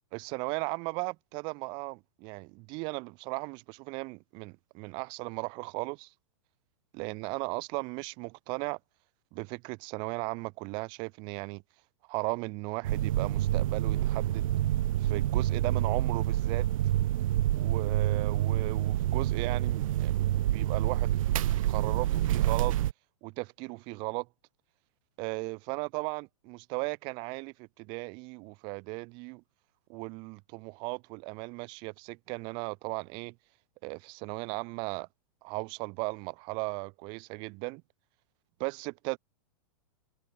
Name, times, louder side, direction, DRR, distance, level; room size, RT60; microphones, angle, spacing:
voice 1, 0.1-6.1 6.9-8.8 9.3-11.6 12.1-14.5 15.0-16.7 17.5-21.1 21.7-22.8 23.2-24.3 25.2-29.4 29.9-33.3 33.8-35.1 35.4-37.8 38.6-39.2, right 29 dB, 25° right, 1.5 m, -36 dB
sound 1, 12.8-22.9, right 13 dB, 75° right, 0.5 m, -27 dB
supercardioid pair, 175°, 17 cm